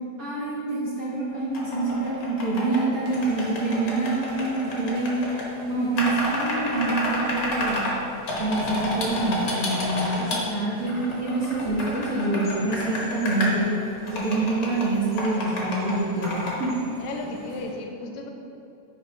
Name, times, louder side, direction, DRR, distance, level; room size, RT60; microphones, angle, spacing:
voice 1, 0.2-5.3 5.7-7.8 8.4-13.7 14.1-16.7, right 2 dB, 45° right, -9 dB, 1.1 m, -26 dB
sound 1, 1.5-2.8 3.1-5.4 6.0-7.9 8.3-10.4 10.9-13.5 14.1-14.9 15.2-15.9 16.2-16.7, left 1 dB, 50° left, 1.3 m, -30 dB
sound 2, 3.0-17.7, right 2 dB, 75° right, 2.3 m, -44 dB
sound 3, 9.9-17.4, left 2 dB, 25° right, 1.2 m, -48 dB
voice 2, 10.3-11.1 17.0-18.3, left 3 dB, 80° left, 2 dB, 1.9 m, -35 dB
9.7 x 5.0 x 3.3 m, 2.7 s
omnidirectional pair, 3.4 m